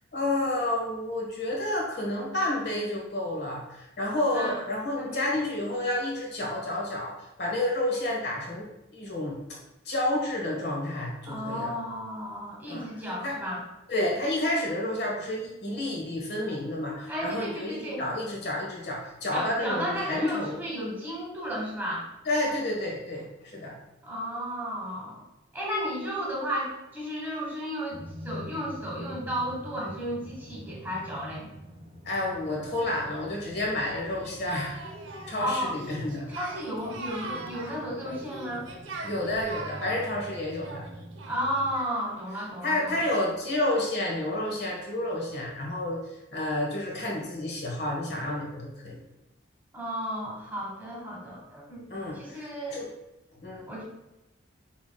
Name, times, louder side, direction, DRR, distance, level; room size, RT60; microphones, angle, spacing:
voice 1, 0.1-8.7 8.9-9.4 9.8-11.7 12.7-12.9 13.2-13.3 13.9-20.6 22.2-23.7 32.0-34.8 35.3-36.3 39.0-40.8 42.6-46.0 46.3-49.0 51.9-52.9 53.4-53.7, left 1 dB, 55° left, -2 dB, 1.4 m, -30 dB
voice 2, 5.0-5.3 11.2-13.6 17.1-18.0 19.3-22.1 24.0-25.2 25.5-31.5 35.4-35.7 36.3-38.7 41.3-43.0 49.7-51.9 52.1-52.8 53.7-53.8, equal, 10° right, -4 dB, 1.2 m, -33 dB
sound 1, 27.9-41.7, equal, 30° right, 0.5 m, -45 dB
Singing, 33.9-42.2, right 3 dB, 75° right, 0.7 m, -42 dB
5.8 x 3.8 x 2.3 m, 0.93 s
head